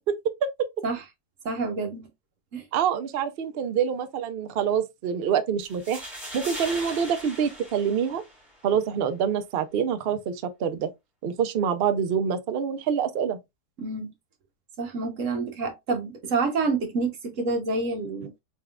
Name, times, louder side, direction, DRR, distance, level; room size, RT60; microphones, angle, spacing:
voice 1, 1.4-2.1 2.5-2.6 13.8-14.1 14.8-18.3, right 3 dB, 55° right, 1.2 m, -28 dB
voice 2, 2.7-6.0 6.3-8.2 8.6-10.9 11.2-13.4, right 7 dB, 70° right, 0.5 m, -26 dB
sound 1, 5.6-8.6, equal, ahead, 1.7 m, -39 dB
4.1 x 3.4 x 2.4 m
omnidirectional pair, 1.8 m